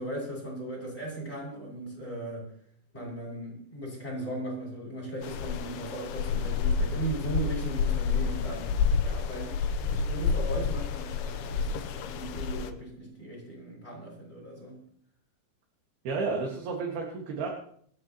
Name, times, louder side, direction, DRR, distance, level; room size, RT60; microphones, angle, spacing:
voice 1, 0.0-2.5 2.9-8.8 9.0-9.6 9.9-14.7, right 1 dB, 15° left, -3 dB, 6.6 m, -37 dB
sound 1, 5.2-12.7, left 5 dB, 90° left, 2.9 m, -29 dB
voice 2, 16.1-17.5, right 4 dB, 75° right, -1 dB, 3.9 m, -31 dB
26.5 x 10.0 x 3.1 m, 0.63 s
omnidirectional pair, 4.5 m